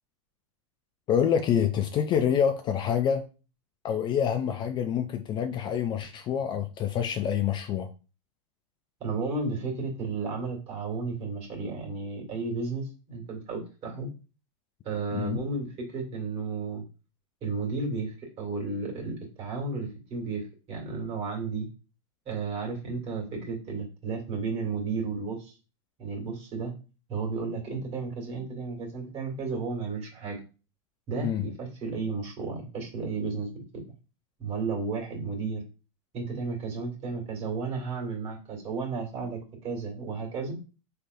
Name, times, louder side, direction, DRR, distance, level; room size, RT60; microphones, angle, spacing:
voice 1, 1.1-3.3 3.8-7.9 15.1-15.4 31.2-31.5, left 8 dB, 30° left, 0.3 m, -27 dB
voice 2, 9.0-14.1 14.8-15.7 15.9-16.8 17.4-21.7 22.3-25.6 26.0-26.7 27.1-30.4 31.1-33.5 34.4-35.6 36.1-40.5, right 4 dB, 35° right, 1.9 m, -33 dB
3.7 x 3.3 x 2.6 m
hypercardioid pair, 115°, 17 cm